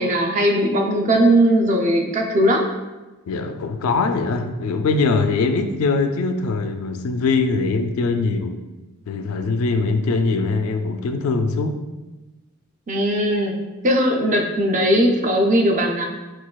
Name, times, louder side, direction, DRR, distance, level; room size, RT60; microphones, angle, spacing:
voice 1, 0.0-2.6 12.9-13.5 13.8-16.1, right 1 dB, 35° right, 2 dB, 0.4 m, -18 dB
voice 2, 3.3-8.6 9.1-11.8, left 3 dB, 75° left, 7 dB, 0.3 m, -22 dB
6.0 x 2.3 x 2.2 m, 1.1 s
head